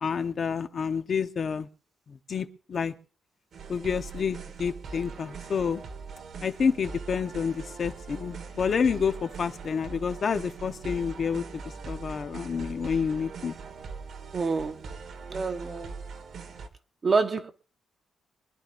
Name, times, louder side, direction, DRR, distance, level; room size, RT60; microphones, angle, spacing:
voice 1, 0.0-1.7 2.1-2.9 3.7-5.8 6.4-13.6, left 6 dB, 45° left, 0.9 m, -29 dB
sound 1, 3.5-16.7, right 5 dB, 55° right, 1.7 m, -41 dB
voice 2, 14.3-14.8 15.3-15.9 17.0-17.5, right 4 dB, 30° right, 1.0 m, -27 dB
25.0 x 11.0 x 2.6 m
wide cardioid pair, 155°, 0 cm